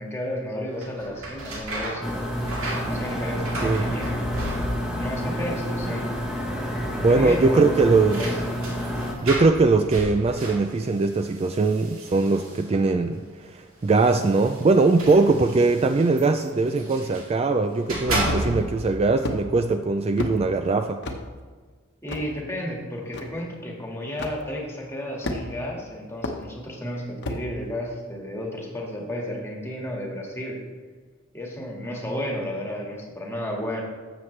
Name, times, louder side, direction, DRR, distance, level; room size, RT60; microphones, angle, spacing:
voice 1, 0.0-2.1 2.9-4.7 5.0-6.1 7.1-7.9 8.2-8.3 22.0-30.6 31.3-33.8, equal, 10° left, -1 dB, 1.8 m, -32 dB
sound 1, 0.7-5.1 5.4-6.1 6.4-6.5 7.5-13.0 13.8-17.3 17.7-18.9, right 1 dB, 80° right, 2.1 m, -34 dB
sound 2, 2.0-9.1, equal, 5° right, 1.3 m, -29 dB
voice 2, 7.0-8.3 9.2-21.0, right 3 dB, 30° right, 7 dB, 0.3 m, -21 dB
sound 3, 18.2-18.7 19.2-19.4 20.2-20.4 21.0-21.2 22.1-22.3 23.1-23.2 24.2-24.4 25.2-25.7 26.2-26.4 27.2-27.5, left 1 dB, 55° left, 1.0 m, -30 dB
13.0 x 7.7 x 3.2 m, 1.5 s
head